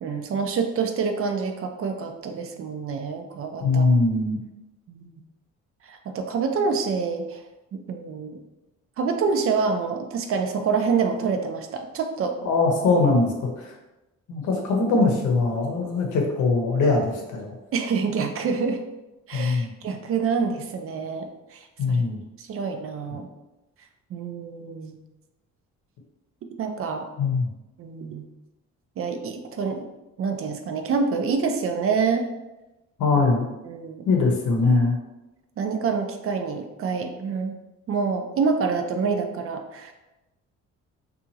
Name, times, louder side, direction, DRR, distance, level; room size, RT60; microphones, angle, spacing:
voice 1, 0.0-3.9 4.9-5.1 5.9-7.4 7.9-8.4 9.0-12.3 17.7-18.8 19.3-21.3 21.5-21.6 21.9-22.0 22.4-23.3 24.1-25.0 26.6-27.1 27.8-28.2 29.0-29.9 30.2-32.3 33.7-34.1 35.6-37.5 37.9-39.9, right 5 dB, 50° right, 5 dB, 0.4 m, -26 dB
voice 2, 3.6-4.4 12.4-13.7 14.3-17.6 19.3-19.7 21.8-22.2 27.2-27.5 33.0-33.5 34.1-35.0, left 3 dB, 75° left, 1 dB, 0.7 m, -21 dB
2.8 x 2.4 x 2.7 m, 1.0 s
cardioid pair, 90°, 30 cm